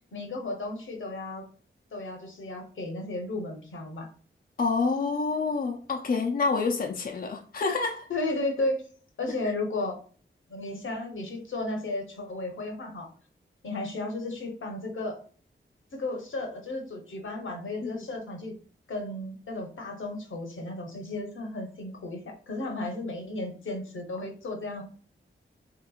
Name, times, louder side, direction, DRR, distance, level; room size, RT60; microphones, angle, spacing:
voice 1, 0.1-1.4 1.9-4.1 8.1-8.8 9.2-10.0 10.5-13.1 13.6-15.2 15.9-18.6 18.9-24.8, left 2 dB, 75° left, 0.9 m, -34 dB
voice 2, 4.6-8.1 17.8-18.1, left 4 dB, 45° left, 0.4 m, -28 dB
3.3 x 2.9 x 2.3 m
wide cardioid pair, 70°, 20 cm